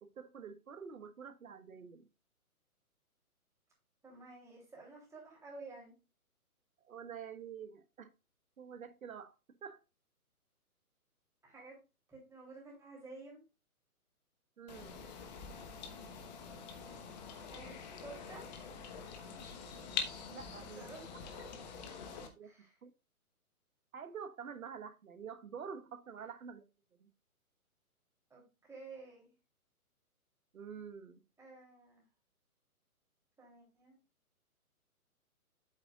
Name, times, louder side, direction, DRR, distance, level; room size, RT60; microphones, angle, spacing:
voice 1, 0.0-2.1 6.8-8.1 8.6-9.3 9.6-9.8 14.6-14.9 20.3-20.9 22.4-22.5 22.8-22.9 23.9-26.6 27.0-27.1 30.5-31.2, right 7 dB, 65° right, 10 dB, 1.4 m, -47 dB
voice 2, 4.0-5.9 11.4-11.8 12.1-13.4 17.5-17.7 18.0-18.4 20.8-21.5 22.4-22.7 28.3-29.3 31.4-32.0 33.4-34.0, right 3 dB, 5° right, -2 dB, 3.1 m, -52 dB
sound 1, 14.7-22.3, left 6 dB, 30° left, 1.2 m, -45 dB
8.3 x 7.8 x 2.4 m, 0.28 s
hypercardioid pair, 140°, 44 cm